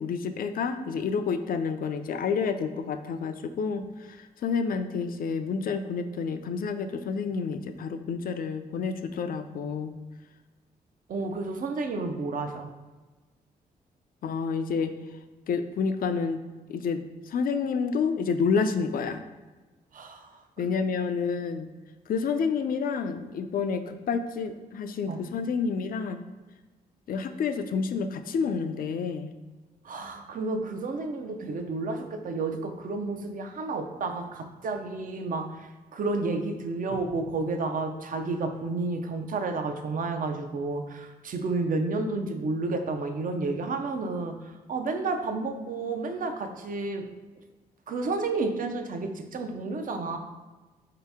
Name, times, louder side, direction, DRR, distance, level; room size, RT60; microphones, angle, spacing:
voice 1, 0.0-3.8 4.2-10.0 14.2-14.9 15.5-16.4 16.7-19.2 20.6-21.7 22.1-26.2 27.1-29.4, left 5 dB, 60° left, 9 dB, 0.4 m, -29 dB
voice 2, 11.1-12.7 19.9-20.3 25.1-25.2 29.8-47.1 47.9-50.2, right 3 dB, 55° right, 5 dB, 0.5 m, -31 dB
4.0 x 2.8 x 3.5 m, 1.2 s
supercardioid pair, 60°, 17 cm